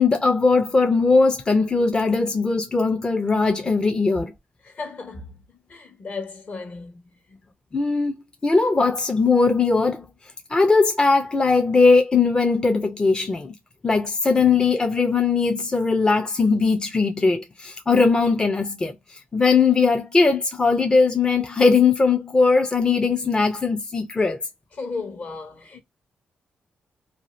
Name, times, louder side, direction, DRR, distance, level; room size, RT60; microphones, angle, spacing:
voice 1, 0.0-4.3 7.7-8.1 8.4-10.1 10.5-13.5 13.8-24.4, left 4 dB, 25° left, 0.5 m, -19 dB
voice 2, 4.6-7.4 24.7-25.8, left 4 dB, 50° left, 1.1 m, -35 dB
2.7 x 2.3 x 3.0 m
cardioid pair, 80°, 3 cm